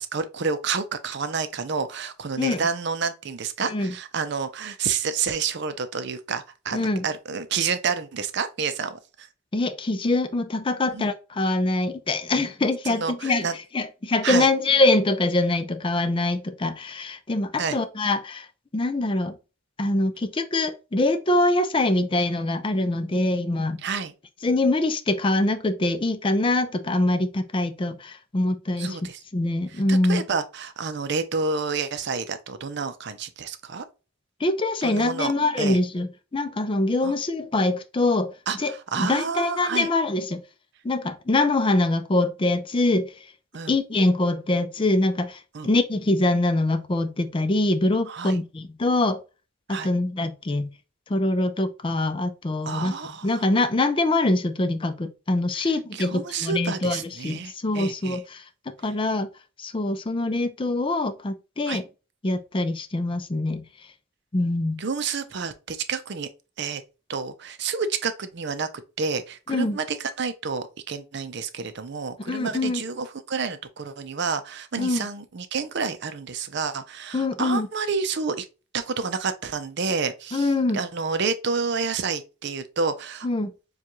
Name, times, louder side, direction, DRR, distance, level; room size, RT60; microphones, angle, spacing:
voice 1, 0.0-9.3 10.9-11.1 12.8-13.6 14.2-14.5 17.6-17.8 23.8-24.1 28.8-29.2 29.7-33.8 34.8-35.3 35.6-35.8 37.0-37.1 38.5-39.9 43.5-43.7 45.5-45.7 48.1-48.4 49.7-49.9 52.7-53.5 55.9-58.2 61.7-61.8 64.8-66.3 66.6-66.8 67.1-68.7 69.0-78.5 78.7-83.3, right 5 dB, 55° right, 0.5 m, -29 dB
voice 2, 3.6-3.9 6.7-7.0 9.5-13.5 13.7-18.5 18.7-19.3 19.8-23.8 24.4-29.0 29.3-30.2 34.4-40.4 40.8-43.1 43.7-49.2 49.7-50.7 51.1-52.9 53.2-58.4 58.8-59.3 59.6-61.8 62.2-63.6 64.3-64.8 69.5-69.8 72.3-72.8 74.8-75.1 77.1-77.7 80.3-80.8 83.2-83.5, left 2 dB, 25° left, 0.4 m, -24 dB
6.9 x 2.3 x 3.0 m
head